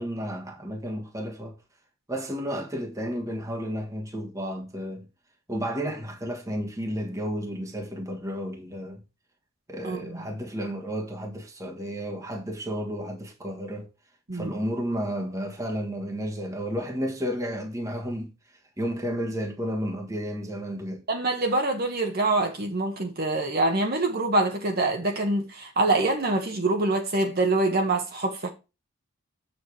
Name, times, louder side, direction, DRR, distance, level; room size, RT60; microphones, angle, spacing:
voice 1, 0.0-1.5 2.1-5.0 5.5-9.0 9.7-13.9 14.3-18.3 18.8-21.0, equal, 15° right, 1.4 m, -32 dB
voice 2, 9.8-10.3 14.3-14.5 21.1-28.5, right 2 dB, 45° right, 1.3 m, -25 dB
7.8 x 7.0 x 3.3 m
head